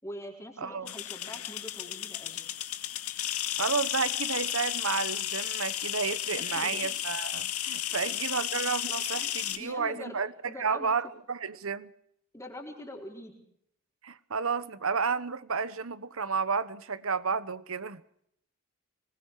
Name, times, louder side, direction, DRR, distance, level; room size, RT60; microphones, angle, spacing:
voice 1, 0.0-2.4 6.4-7.0 7.9-8.2 9.2-10.9 12.3-13.3, left 1 dB, 15° left, 4.3 m, -44 dB
voice 2, 0.6-0.9 3.6-10.3 10.6-11.9 14.0-18.0, right 5 dB, 65° right, 1.1 m, -31 dB
sound 1, 0.9-9.6, left 12 dB, 80° left, 2.0 m, -33 dB
26.0 x 20.5 x 4.8 m
head